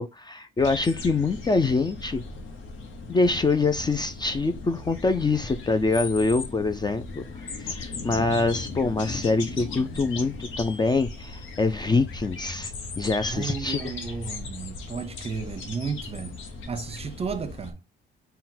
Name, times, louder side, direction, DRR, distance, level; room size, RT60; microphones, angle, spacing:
voice 1, 0.0-2.2 3.1-7.2 7.7-13.8, left 3 dB, 20° left, 0.4 m, -25 dB
sound 1, 0.6-17.7, left 3 dB, 75° left, 0.9 m, -37 dB
voice 2, 13.3-16.4 16.7-17.8, right 5 dB, 30° right, 0.6 m, -33 dB
3.8 x 2.2 x 4.2 m
cardioid pair, 90°, 20 cm